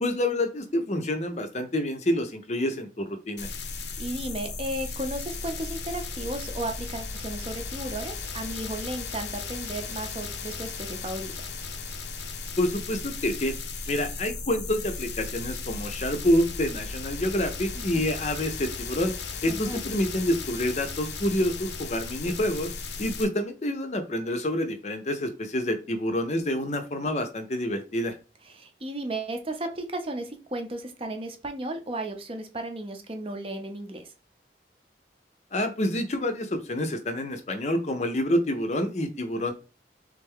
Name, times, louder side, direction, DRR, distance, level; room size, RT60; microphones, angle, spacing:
voice 1, 0.0-3.5 12.6-13.6 13.9-19.1 19.4-22.7 23.0-28.1 35.5-39.5, left 1 dB, 40° left, 7 dB, 0.6 m, -27 dB
sound 1, 3.4-23.2, left 4 dB, 75° left, 0.7 m, -36 dB
voice 2, 4.0-11.3 17.7-17.8 19.5-19.8 23.0-23.1 28.5-34.1, right 1 dB, 30° right, 6 dB, 0.7 m, -34 dB
3.5 x 3.3 x 3.6 m, 0.32 s
head